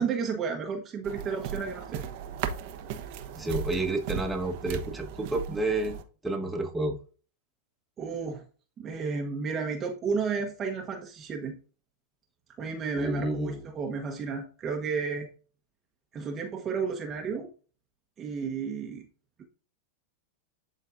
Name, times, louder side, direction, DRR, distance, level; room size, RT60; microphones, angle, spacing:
voice 1, 0.0-2.0 8.0-8.4 8.8-11.6 12.6-15.3 16.1-17.5 18.2-19.1, right 5 dB, 30° right, 2 dB, 1.1 m, -32 dB
sound 1, 1.0-6.0, right 8 dB, 55° right, 1.0 m, -37 dB
voice 2, 3.4-6.0 6.2-7.0 13.0-13.6, right 2 dB, 10° right, 1 dB, 1.4 m, -30 dB
11.5 x 4.0 x 2.6 m, 0.38 s
hypercardioid pair, 115°, 0 cm